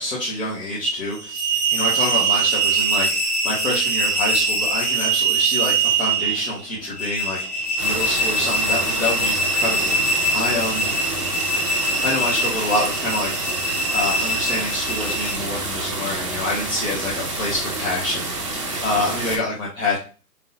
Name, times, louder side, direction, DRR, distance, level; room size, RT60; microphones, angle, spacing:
voice 1, 0.0-11.0 11.8-13.4 13.9-20.0, left 2 dB, 55° left, -6 dB, 1.6 m, -27 dB
sound 1, 1.1-15.3, right 3 dB, 10° left, 0.9 m, -23 dB
sound 2, 7.8-19.4, right 2 dB, 20° right, 0.5 m, -28 dB
3.8 x 3.6 x 2.7 m, 0.36 s
figure-of-eight pair, 140°, 47 cm